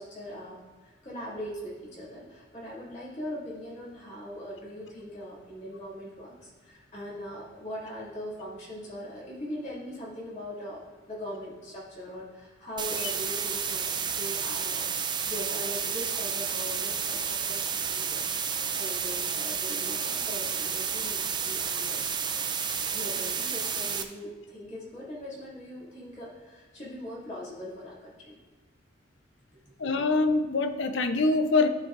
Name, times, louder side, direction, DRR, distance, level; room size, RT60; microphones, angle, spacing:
voice 1, 0.0-10.8 11.1-14.9 15.3-22.0 22.9-28.4 29.5-29.6, equal, 40° left, -8 dB, 2.4 m, -41 dB
sound 1, 12.8-24.0, right 6 dB, 25° right, 0.5 m, -31 dB
voice 2, 29.8-31.7, left 3 dB, 70° left, 8 dB, 0.7 m, -24 dB
13.5 x 5.3 x 2.5 m, 1.4 s
head